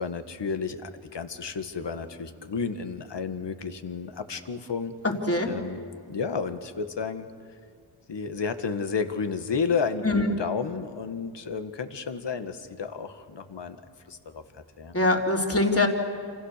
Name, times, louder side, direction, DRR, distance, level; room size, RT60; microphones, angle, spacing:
voice 1, 0.0-4.9 5.5-5.8 6.1-7.3 8.1-13.8 14.1-14.4 14.8-14.9, left 5 dB, 65° left, 9 dB, 1.7 m, -31 dB
voice 2, 5.0-5.5 10.0-10.3 14.9-15.9, left 2 dB, 30° left, 1 dB, 3.7 m, -23 dB
28.5 x 27.0 x 6.7 m, 2.2 s
cardioid pair, 60°, 46 cm